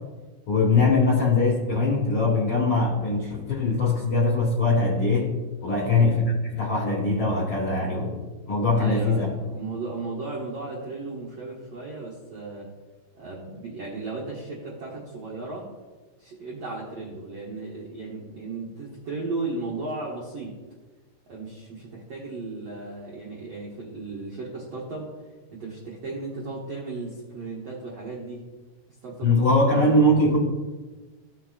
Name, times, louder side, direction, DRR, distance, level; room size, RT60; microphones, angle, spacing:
voice 1, 0.5-5.3 5.6-6.2 6.5-8.2 8.5-9.3 29.2-30.4, left 2 dB, 75° left, -5 dB, 1.2 m, -21 dB
voice 2, 8.7-12.7 13.1-15.7 16.2-20.5 21.3-25.1 25.5-28.4 29.0-29.4 29.7-30.0, right 3 dB, 90° right, -5 dB, 1.4 m, -35 dB
15.5 x 5.8 x 2.4 m, 1.3 s
omnidirectional pair, 4.9 m